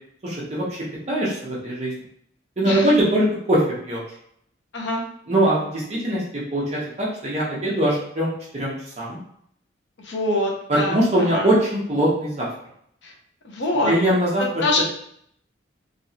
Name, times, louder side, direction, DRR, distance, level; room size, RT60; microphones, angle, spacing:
voice 1, 0.2-1.9 2.6-4.0 5.3-6.2 6.5-9.2 10.9-12.5 13.8-14.4 14.8-14.9, right 1 dB, 35° right, -6 dB, 0.8 m, -22 dB
voice 2, 10.0-11.5 13.0-13.1 13.4-13.9 14.4-14.8, left 2 dB, 65° left, 0 dB, 0.7 m, -24 dB
3.0 x 2.9 x 2.8 m, 0.68 s
head